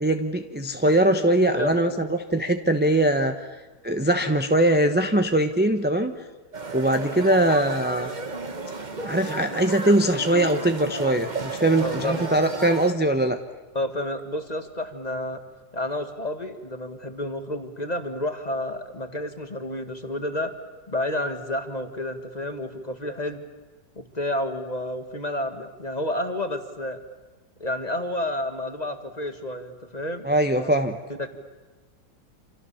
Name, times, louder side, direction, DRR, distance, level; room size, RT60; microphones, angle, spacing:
voice 1, 0.0-3.5 3.8-6.1 6.7-8.1 9.0-13.4 30.2-31.0, right 1 dB, 10° right, 6 dB, 0.8 m, -21 dB
voice 2, 1.5-2.0 11.8-12.2 13.7-15.4 15.7-20.5 20.9-23.4 24.0-27.0 27.6-30.8 31.1-31.4, left 1 dB, 25° left, 7 dB, 2.0 m, -30 dB
sound 1, 6.5-12.9, right 3 dB, 25° right, 1.4 m, -33 dB
28.0 x 28.0 x 7.1 m, 1.2 s
omnidirectional pair, 1.9 m